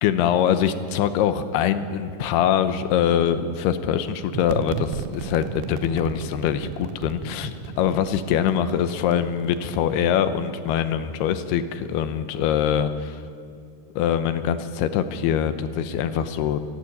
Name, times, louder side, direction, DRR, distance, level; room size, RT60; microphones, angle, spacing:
voice 1, 0.0-13.2 14.0-16.6, left 9 dB, 80° left, 10 dB, 2.7 m, -23 dB
sound 1, 4.3-9.8, right 7 dB, 85° right, 3.2 m, -35 dB
29.0 x 11.5 x 8.8 m, 2.3 s
omnidirectional pair, 5.0 m